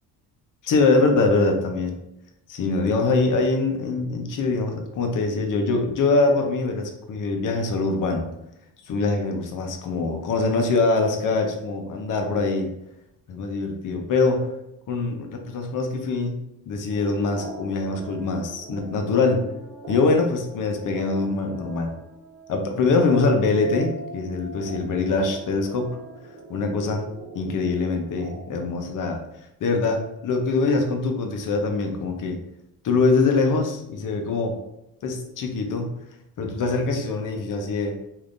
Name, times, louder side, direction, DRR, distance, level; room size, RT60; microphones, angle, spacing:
voice 1, 0.6-2.0 2.5-8.3 8.9-12.7 13.3-14.5 14.9-16.4 16.7-19.4 19.9-21.9 22.5-25.9 26.5-27.0 27.3-29.2 29.6-32.4 32.8-34.6 35.0-35.9 36.4-38.0, left 3 dB, 50° left, 4 dB, 0.7 m, -23 dB
sound 1, 16.9-28.7, right 2 dB, 60° right, 1.0 m, -41 dB
3.5 x 2.7 x 2.5 m, 0.84 s
cardioid pair, 95°, 39 cm